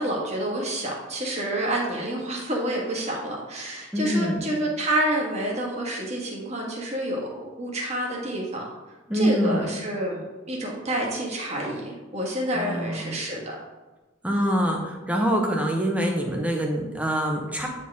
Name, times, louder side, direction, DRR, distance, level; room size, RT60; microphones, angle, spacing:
voice 1, 0.0-8.7 9.1-13.5 14.3-14.7, right 1 dB, 35° right, -2 dB, 1.6 m, -28 dB
voice 2, 3.9-4.4 9.1-9.7 12.5-13.2 14.2-17.7, equal, 5° right, 1 dB, 0.9 m, -25 dB
9.1 x 4.4 x 3.6 m, 1.2 s
head